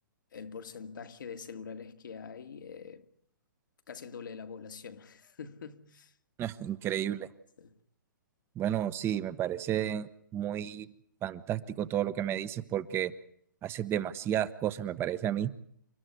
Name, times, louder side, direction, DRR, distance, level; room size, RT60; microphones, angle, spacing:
voice 1, 0.3-3.1 3.9-6.2 7.6-7.8, left 6 dB, 70° left, 1.8 m, -44 dB
voice 2, 6.4-7.3 8.6-10.9 11.2-13.1 13.6-15.5, right 11 dB, 20° right, 1.0 m, -32 dB
29.0 x 13.0 x 9.6 m
hypercardioid pair, 130°, 11 cm